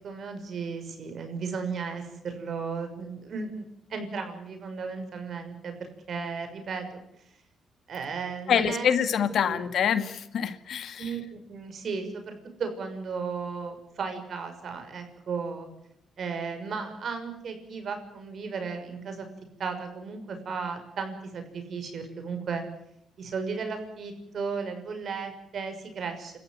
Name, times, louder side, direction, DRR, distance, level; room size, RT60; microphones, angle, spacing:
voice 1, 0.0-3.6 3.9-5.7 6.1-7.0 7.9-8.9 9.5-9.6 11.0-15.7 16.2-19.3 19.6-22.6 23.2-26.4, right 5 dB, 55° right, 7 dB, 6.2 m, -35 dB
voice 2, 8.5-11.2, left 8 dB, 65° left, 10 dB, 1.9 m, -26 dB
29.0 x 14.5 x 9.2 m, 0.78 s
cardioid pair, 90°, 0 cm